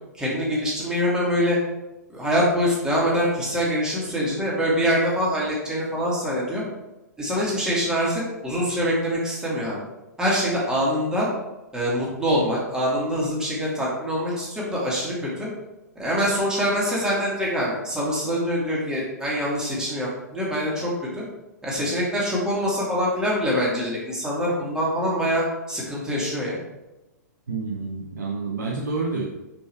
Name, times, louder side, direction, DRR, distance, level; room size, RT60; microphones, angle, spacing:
voice 1, 0.2-1.6 2.1-6.6 7.2-9.8 10.2-11.3 11.7-15.5 16.0-21.2 21.6-26.6, equal, 5° right, -6 dB, 2.3 m, -24 dB
voice 2, 27.5-29.2, right 3 dB, 75° right, -2 dB, 0.9 m, -28 dB
5.8 x 4.6 x 4.6 m, 1.0 s
figure-of-eight pair, 115°, 10 cm